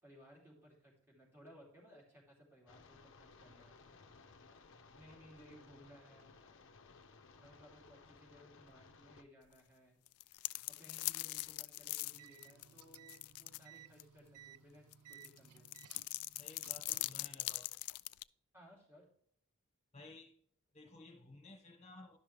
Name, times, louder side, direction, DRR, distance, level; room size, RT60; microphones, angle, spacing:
voice 1, 0.0-3.8 4.9-6.3 7.4-10.0 10.8-15.7 16.9-17.0 18.5-19.0, equal, 10° right, 2.9 m, -61 dB
sound 1, 2.7-9.2, left 4 dB, 55° left, 0.7 m, -60 dB
sound 2, 10.1-13.6 14.0-14.1 14.9-18.2, left 20 dB, 80° left, 0.3 m, -41 dB
sound 3, 12.0-17.2, right 8 dB, 85° right, 0.5 m, -60 dB
voice 2, 16.4-17.8 19.9-20.4 20.7-22.2, left 2 dB, 30° left, 1.4 m, -56 dB
11.5 x 6.0 x 3.3 m
head